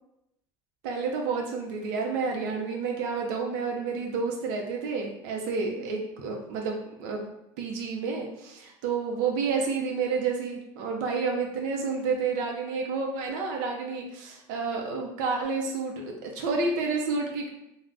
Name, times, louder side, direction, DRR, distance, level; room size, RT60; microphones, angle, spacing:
voice 1, 0.8-7.3 7.6-17.5, right 4 dB, 85° right, 1 dB, 0.5 m, -30 dB
2.4 x 2.1 x 3.3 m, 0.85 s
supercardioid pair, 110°, 10 cm